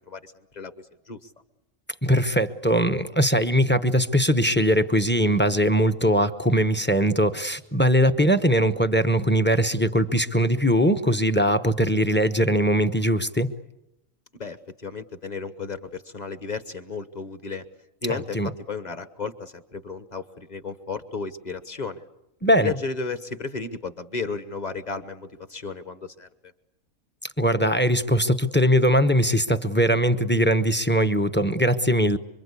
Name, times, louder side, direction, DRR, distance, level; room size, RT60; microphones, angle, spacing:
voice 1, 0.1-1.2 14.4-17.6 18.0-22.0 22.6-26.3, left 4 dB, 30° left, 11 dB, 1.3 m, -34 dB
voice 2, 2.0-13.5 18.3-18.5 22.4-22.7 27.4-32.2, equal, 10° left, 10 dB, 0.8 m, -21 dB
27.0 x 25.0 x 8.4 m, 0.87 s
omnidirectional pair, 1.4 m